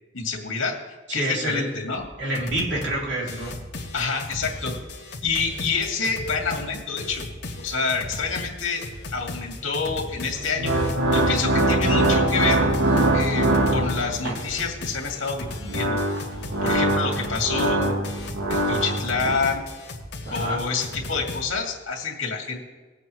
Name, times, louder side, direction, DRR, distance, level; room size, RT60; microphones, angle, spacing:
voice 1, 0.1-0.8 1.1-2.1 3.9-4.7 5.2-7.2 7.6-8.8 9.1-10.7 11.1-12.7 13.1-16.0 16.6-18.0 18.5-19.6 20.3-22.6, left 4 dB, 85° left, 0 dB, 2.3 m, -27 dB
voice 2, 1.1-1.8 2.2-3.5 20.2-20.6, right 1 dB, 65° right, -3 dB, 3.2 m, -27 dB
sound 1, 2.0-2.1 2.4-3.0 3.3-21.4, left 2 dB, 55° left, 1.4 m, -36 dB
sound 2, 10.4-14.5 15.4-19.4, right 1 dB, 80° right, 1.4 m, -23 dB
19.5 x 8.3 x 3.2 m, 1.3 s
head